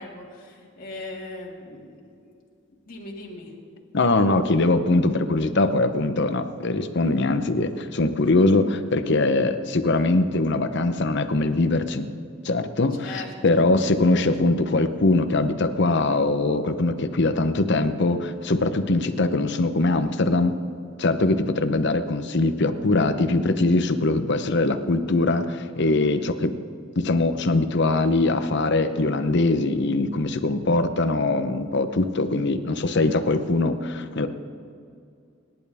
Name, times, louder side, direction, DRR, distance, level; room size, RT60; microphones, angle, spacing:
voice 1, 0.0-2.3 2.8-3.5 13.0-13.6, left 2 dB, 45° left, -3 dB, 2.4 m, -39 dB
voice 2, 3.9-12.1 12.4-20.5 21.0-26.5 27.0-34.3, left 2 dB, 60° left, 10 dB, 0.9 m, -22 dB
27.0 x 11.0 x 3.6 m, 2.3 s
head